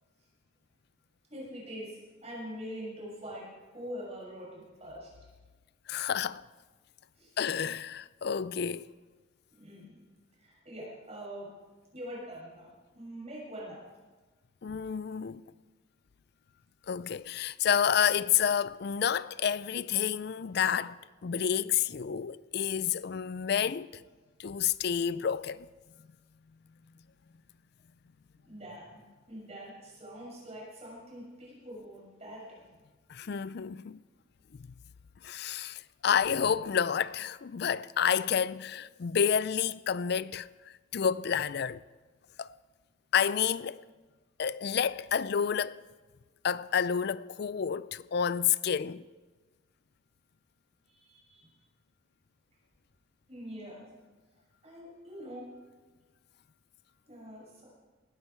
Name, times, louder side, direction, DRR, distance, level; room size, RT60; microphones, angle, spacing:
voice 1, 1.3-5.1 7.2-7.4 9.5-10.0 10.4-11.5 11.9-13.8 28.4-29.0 29.3-32.7 50.9-51.5 53.3-53.8 54.6-55.4 57.1-57.6, equal, 30° right, 6.5 m, -44 dB
voice 2, 5.9-6.4 7.4-8.9 14.6-15.4 16.9-24.0 24.4-25.7 33.1-34.0 34.6-34.7 35.2-41.8 42.4-42.5 43.1-43.8 44.4-45.8 46.4-49.1, left 8 dB, 55° left, 0.4 m, -29 dB
19.5 x 13.5 x 4.6 m
head